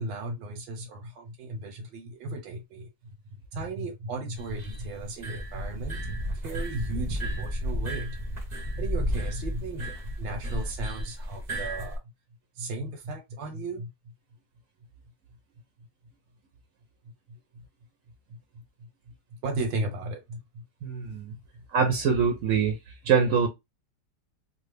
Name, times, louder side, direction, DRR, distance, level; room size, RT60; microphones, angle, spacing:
voice 1, 0.0-2.9 3.5-8.2 8.8-12.0 12.6-13.9 17.5-17.6 18.3-18.4 19.4-20.6 21.1-21.4, right 2 dB, 90° right, 1.6 m, -35 dB
sound 1, 4.4-12.0, equal, 45° right, 0.6 m, -33 dB
voice 2, 20.8-21.3 21.7-22.8 23.0-23.5, right 6 dB, 65° right, 0.9 m, -24 dB
3.3 x 2.1 x 3.2 m
omnidirectional pair, 2.0 m